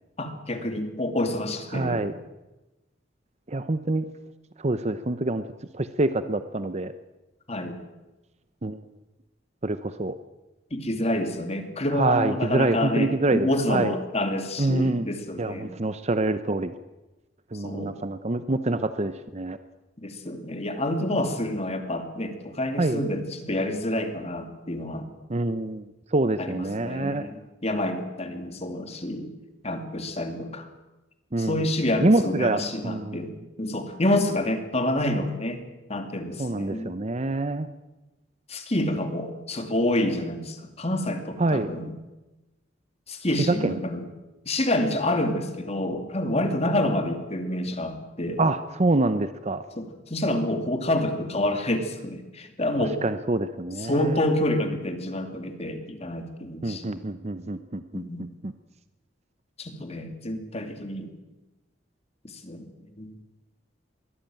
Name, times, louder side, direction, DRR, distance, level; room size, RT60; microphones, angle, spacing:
voice 1, 0.2-2.0 7.5-7.8 10.7-15.7 17.5-18.0 20.0-25.1 26.4-27.3 27.6-29.3 29.6-30.7 31.4-33.3 33.6-35.6 35.9-37.0 38.5-41.9 43.1-44.0 44.5-48.4 49.8-53.0 53.8-57.0 57.9-58.3 59.6-61.1 62.4-63.2, left 1 dB, 35° left, 7 dB, 2.6 m, -28 dB
voice 2, 1.7-2.1 3.5-4.1 4.6-5.5 5.7-6.9 8.6-8.8 9.6-10.2 12.0-13.9 14.6-15.1 15.4-16.7 17.5-19.6 22.8-23.0 25.3-27.3 31.3-31.7 32.0-33.3 36.4-37.7 41.4-41.7 43.5-43.8 48.4-49.6 53.0-54.2 56.6-58.5, right 2 dB, 35° right, 11 dB, 0.8 m, -26 dB
22.5 x 16.0 x 9.0 m, 1.1 s
head